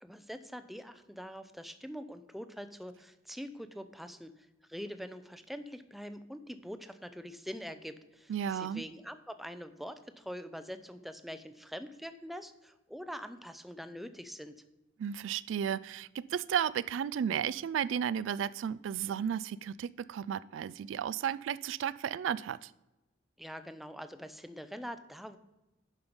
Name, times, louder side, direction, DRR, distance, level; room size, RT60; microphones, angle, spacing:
voice 1, 0.0-14.5 23.4-25.4, equal, ahead, 10 dB, 0.5 m, -44 dB
voice 2, 8.3-8.8 15.0-22.7, right 8 dB, 75° right, 18 dB, 0.3 m, -33 dB
10.5 x 5.5 x 5.1 m, 0.98 s
head